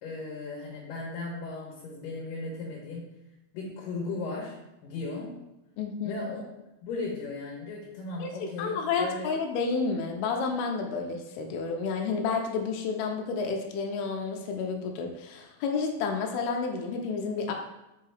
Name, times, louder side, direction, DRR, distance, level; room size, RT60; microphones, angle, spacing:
voice 1, 0.0-3.0 3.5-4.6 4.8-5.3 6.0-6.4 6.8-9.3, left 3 dB, 70° left, -3 dB, 2.5 m, -36 dB
voice 2, 5.8-6.2 8.2-8.3 8.6-17.5, left 5 dB, 85° left, 2 dB, 2.6 m, -30 dB
5.7 x 5.3 x 3.4 m, 0.96 s
omnidirectional pair, 4.6 m